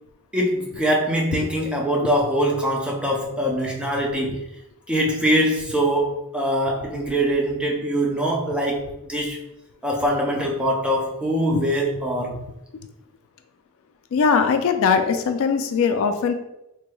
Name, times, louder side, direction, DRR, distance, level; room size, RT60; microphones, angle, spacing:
voice 1, 0.3-4.4 4.9-8.8 9.1-9.4 9.8-12.4, equal, 5° right, -1 dB, 0.5 m, -23 dB
voice 2, 14.1-16.3, left 5 dB, 65° left, 7 dB, 0.3 m, -20 dB
3.2 x 3.0 x 2.2 m, 0.87 s
head